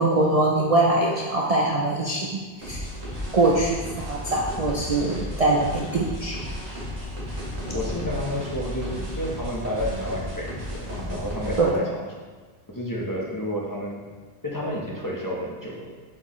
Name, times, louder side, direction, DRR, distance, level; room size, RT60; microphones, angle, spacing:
voice 1, 0.0-2.8 3.3-6.4 11.6-11.7, right 2 dB, 45° right, -3 dB, 0.6 m, -23 dB
sound 1, 2.6-11.6, equal, 90° right, 2.1 m, -33 dB
voice 2, 7.7-11.9 12.2-12.3 12.7-14.0 14.4-15.9, equal, 20° left, -4 dB, 0.9 m, -30 dB
7.4 x 4.6 x 3.1 m, 1.3 s
omnidirectional pair, 1.1 m